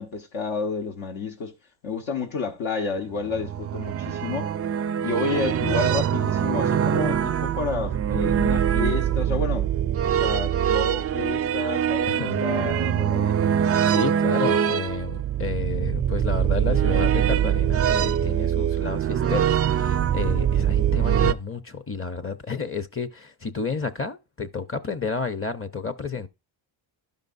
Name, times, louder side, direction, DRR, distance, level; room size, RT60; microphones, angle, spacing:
voice 1, 0.0-1.5 1.8-4.5 5.0-9.7 10.1-13.4, left 4 dB, 65° left, 1.4 m, -30 dB
sound 1, 3.1-21.3, right 9 dB, 30° right, 0.4 m, -23 dB
voice 2, 12.1-12.4 13.9-26.3, left 5 dB, 25° left, 0.8 m, -31 dB
12.0 x 5.2 x 2.6 m
cardioid pair, 85°, 49 cm